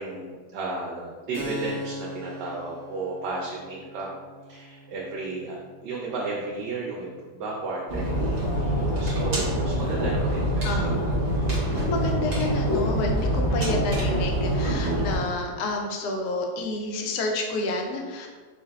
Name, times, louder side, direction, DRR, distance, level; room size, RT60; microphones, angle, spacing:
voice 1, 0.0-4.1 4.5-5.6 5.8-10.8, right 3 dB, 85° right, -3 dB, 1.2 m, -33 dB
Keyboard (musical), 1.3-8.6, left 2 dB, 55° right, 1.2 m, -42 dB
sound 1, 7.9-15.2, equal, 30° right, 0.9 m, -25 dB
voice 2, 10.6-11.1 11.8-18.3, left 2 dB, 75° left, 1 dB, 1.1 m, -30 dB
4.7 x 2.6 x 2.3 m, 1.4 s
omnidirectional pair, 1.8 m